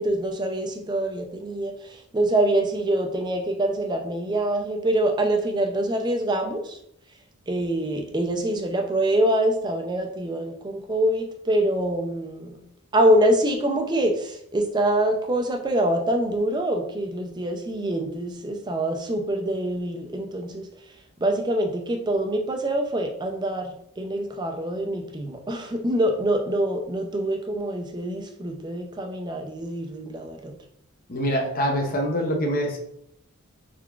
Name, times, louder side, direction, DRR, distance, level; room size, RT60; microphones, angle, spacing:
voice 1, 0.0-6.8 7.5-12.6 12.9-20.7 21.2-30.5, right 1 dB, 20° right, 3 dB, 0.4 m, -25 dB
voice 2, 31.1-32.8, equal, 40° left, 2 dB, 0.6 m, -24 dB
3.7 x 3.3 x 2.3 m, 0.72 s
head